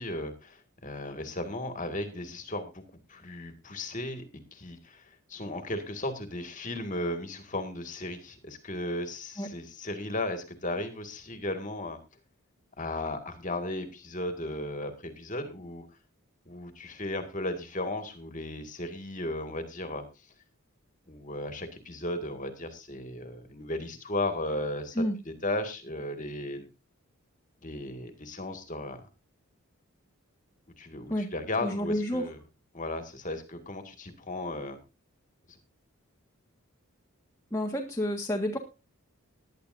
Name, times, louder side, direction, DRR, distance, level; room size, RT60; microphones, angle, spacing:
voice 1, 0.0-2.8 3.1-4.2 4.5-12.0 12.8-15.8 16.5-20.0 21.1-26.7 27.6-29.0 30.8-32.4 32.7-34.8 35.5-35.6, left 1 dB, 35° left, 6 dB, 2.0 m, -35 dB
voice 2, 31.6-32.2 37.5-38.6, equal, 15° left, -1 dB, 1.6 m, -29 dB
19.0 x 11.0 x 2.6 m, 0.28 s
head